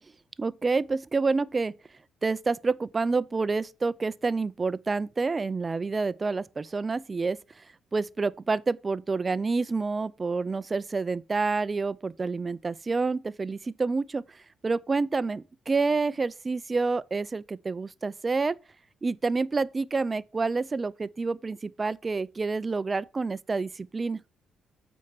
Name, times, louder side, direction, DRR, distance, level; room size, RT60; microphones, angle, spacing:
voice 1, 0.4-1.7 2.2-7.4 7.9-14.2 14.6-18.6 19.0-24.2, right 4 dB, 30° right, 0.4 m, -28 dB
8.5 x 4.6 x 4.6 m
cardioid pair, 90°, 0 cm